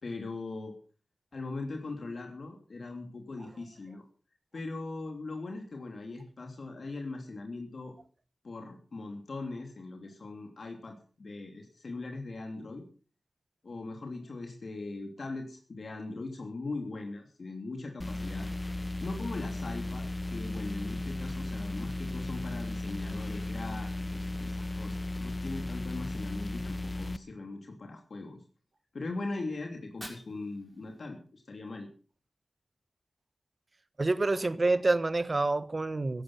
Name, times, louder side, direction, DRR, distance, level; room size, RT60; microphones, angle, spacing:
voice 1, 0.0-0.7 1.3-4.0 4.5-7.9 8.4-12.8 13.6-18.5 19.0-20.0 20.3-28.4 28.9-31.9, left 3 dB, 65° left, 3.0 m, -40 dB
sound 1, 18.0-27.2, left 2 dB, 25° left, 0.9 m, -35 dB
Fire, 29.7-31.7, equal, 10° right, 6.1 m, -51 dB
voice 2, 34.0-36.2, right 2 dB, 40° right, 1.2 m, -27 dB
16.5 x 11.0 x 5.7 m
wide cardioid pair, 75°, 0 cm